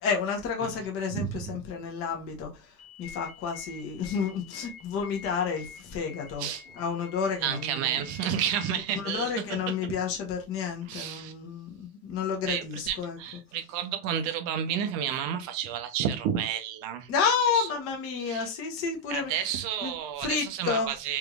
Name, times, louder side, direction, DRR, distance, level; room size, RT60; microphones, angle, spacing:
voice 1, 0.0-2.7 3.0-6.5 6.7-8.0 9.0-13.2 17.1-19.4 19.8-19.9 20.2-20.9, left 6 dB, 30° left, 0.8 m, -30 dB
voice 2, 1.1-1.6 6.4-6.6 7.4-9.9 10.9-11.3 12.5-17.1 17.5-17.7 18.3-18.5 19.1-21.2, right 9 dB, 35° right, 0.5 m, -31 dB
sound 1, 2.8-8.7, left 8 dB, 60° left, 1.4 m, -48 dB
3.4 x 3.1 x 2.3 m
supercardioid pair, 135°, 47 cm